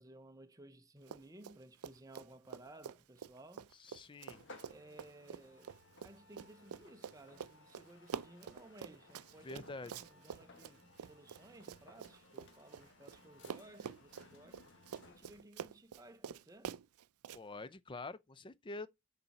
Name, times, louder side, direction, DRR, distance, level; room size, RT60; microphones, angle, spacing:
voice 1, 0.0-3.7 4.7-9.7 10.0-14.7 15.0-16.8, right 1 dB, 15° right, 0.6 m, -58 dB
Run, 1.0-1.6 1.8-13.2 13.4-17.4, right 7 dB, 90° right, 0.4 m, -47 dB
voice 2, 3.8-4.4 9.4-10.0 17.3-18.9, left 3 dB, 20° left, 0.5 m, -46 dB
sound 1, 4.2-15.5, left 2 dB, 55° left, 1.4 m, -61 dB
6.8 x 4.2 x 5.7 m
head